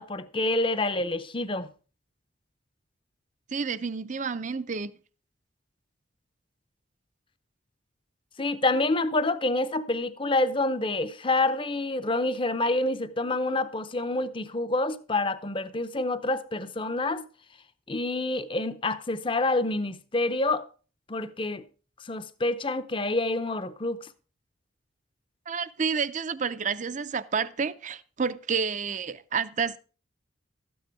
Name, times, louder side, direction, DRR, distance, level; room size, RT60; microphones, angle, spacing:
voice 1, 0.0-1.7 8.4-17.2 17.9-20.7 21.1-21.6 22.0-24.1, left 2 dB, 25° left, 0.7 m, -27 dB
voice 2, 3.5-4.9 25.5-29.8, right 5 dB, 40° right, 0.5 m, -30 dB
13.5 x 9.4 x 4.6 m
head